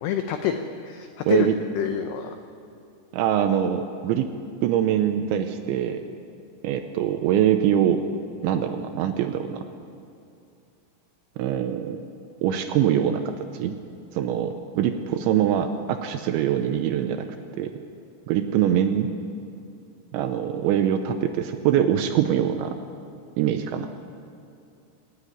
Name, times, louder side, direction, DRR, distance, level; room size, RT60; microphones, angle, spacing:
voice 1, 0.0-1.5 1.8-2.3, left 9 dB, 90° left, 6 dB, 2.3 m, -27 dB
voice 2, 1.3-1.6 3.1-4.3 4.6-6.0 6.6-8.0 8.4-9.6 11.4-12.1 12.4-13.2 13.5-13.8 14.1-17.3 17.6-17.7 18.3-19.1 20.1-22.8 23.4-23.9, right 10 dB, 80° right, 7 dB, 2.8 m, -23 dB
27.0 x 10.0 x 9.5 m, 2.5 s
omnidirectional pair, 6.0 m